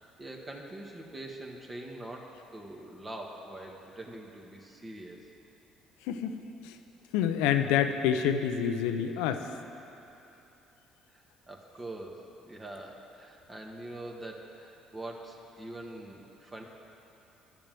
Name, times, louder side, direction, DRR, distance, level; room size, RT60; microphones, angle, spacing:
voice 1, 0.2-5.3 11.1-16.6, right 1 dB, 25° right, 1 dB, 1.8 m, -44 dB
voice 2, 6.0-6.8 7.1-9.5, left 8 dB, 85° left, 8 dB, 0.7 m, -28 dB
11.0 x 7.0 x 9.2 m, 2.9 s
supercardioid pair, 70°, 0 cm